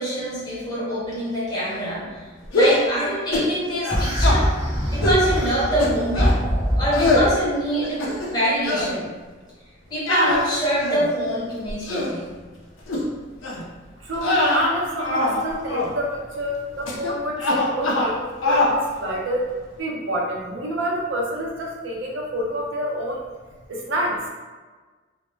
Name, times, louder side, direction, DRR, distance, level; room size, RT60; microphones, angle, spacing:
voice 1, 0.0-2.1 2.5-4.5 4.9-6.4 6.8-8.0 8.3-9.1 9.9-12.3, equal, 20° left, -9 dB, 0.7 m, -25 dB
sound 1, 2.5-2.9 3.3-3.5 3.8-4.4 5.0-5.3 5.8-6.4 6.9-7.3 7.8-8.4 8.6-8.9 10.1-11.1 11.7-12.1 12.9-13.0 13.4-13.6 14.2-15.4 15.7-15.9 16.9-17.1 17.4-18.1 18.4-18.8, left 1 dB, 75° left, 0.4 m, -22 dB
sound 2, 3.9-7.3, equal, 20° right, 0.6 m, -23 dB
voice 2, 14.0-19.4 19.8-23.2 23.7-24.2, equal, 70° right, -2 dB, 0.5 m, -28 dB
2.1 x 2.0 x 3.1 m, 1.3 s
head